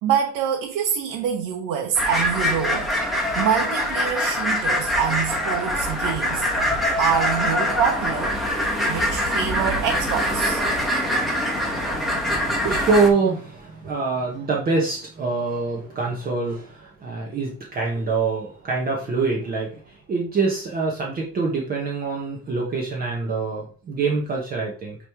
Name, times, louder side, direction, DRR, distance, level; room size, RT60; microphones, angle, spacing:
voice 1, 0.0-2.9 3.3-6.5 7.0-8.4 8.9-10.6, right 8 dB, 80° right, 1.1 m, -25 dB
sound 1, 2.0-13.1, equal, ahead, 1.2 m, -24 dB
voice 2, 11.4-25.0, right 4 dB, 30° right, 1.1 m, -25 dB
8.6 x 3.2 x 3.5 m
cardioid pair, 165°, 31 cm